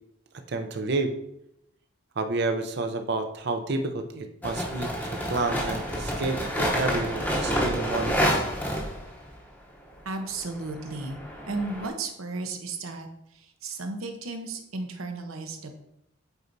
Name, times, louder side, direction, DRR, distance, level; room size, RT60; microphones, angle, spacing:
voice 1, 0.5-1.1 2.2-4.9 5.3-8.4, right 3 dB, 50° right, 6 dB, 0.6 m, -30 dB
sound 1, 4.4-9.3 10.4-11.9, equal, 10° left, 0.8 m, -28 dB
voice 2, 10.0-11.2 11.5-15.7, right 3 dB, 80° right, 5 dB, 0.8 m, -34 dB
8.1 x 4.5 x 2.7 m, 0.79 s
head